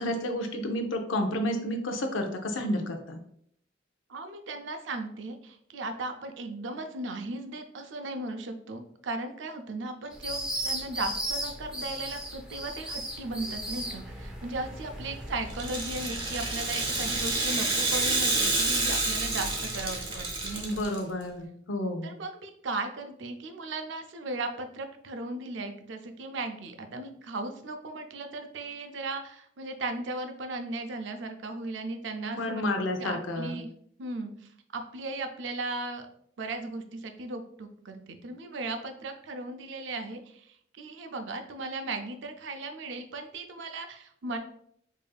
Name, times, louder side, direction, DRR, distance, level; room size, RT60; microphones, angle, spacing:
voice 1, 0.0-3.2 20.6-22.1 32.2-33.6, left 1 dB, 80° left, 5 dB, 0.6 m, -31 dB
voice 2, 4.1-20.8 22.0-32.6 33.0-33.7 34.0-36.0 36.4-44.4, right 2 dB, 70° right, 6 dB, 0.5 m, -37 dB
sound 1, 10.1-20.8, equal, 5° right, 0.5 m, -38 dB
Rattle (instrument), 15.5-21.0, right 3 dB, 25° right, 0.8 m, -29 dB
5.0 x 2.7 x 2.3 m, 0.67 s
head